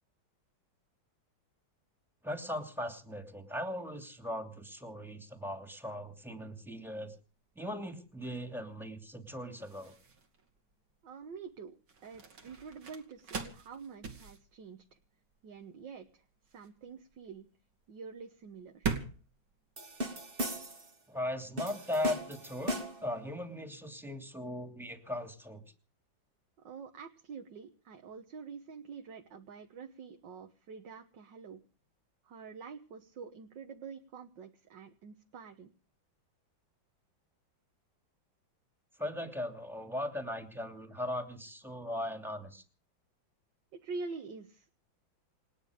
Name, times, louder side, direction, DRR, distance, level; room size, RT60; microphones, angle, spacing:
voice 1, 2.2-7.2 7.6-9.9 21.1-25.6 39.0-42.6, left 1 dB, ahead, 5 dB, 2.7 m, -38 dB
sound 1, 6.8-20.7, right 5 dB, 85° right, 3.2 m, -43 dB
voice 2, 11.0-11.8 12.0-15.0 15.4-16.3 16.5-17.5 17.9-19.0 26.6-31.6 32.2-35.7 43.7-44.8, right 5 dB, 65° right, 4 dB, 2.0 m, -46 dB
sound 2, 19.8-20.9 21.6-23.1, equal, 30° right, 2.0 m, -37 dB
28.5 x 9.6 x 5.2 m, 0.39 s
omnidirectional pair, 2.1 m